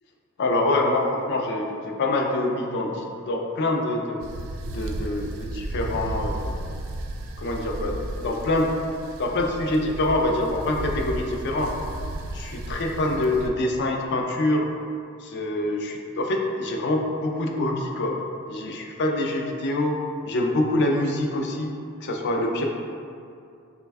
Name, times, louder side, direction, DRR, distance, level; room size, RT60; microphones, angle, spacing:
voice 1, 0.4-4.2 4.7-6.5 7.4-8.8 9.2-11.7 12.3-14.7 15.2-18.2 18.5-22.6, left 1 dB, 55° left, 2 dB, 0.4 m, -25 dB
sound 1, 4.2-13.5, right 1 dB, 70° right, 0.3 m, -34 dB
3.3 x 2.2 x 3.3 m, 2.4 s
head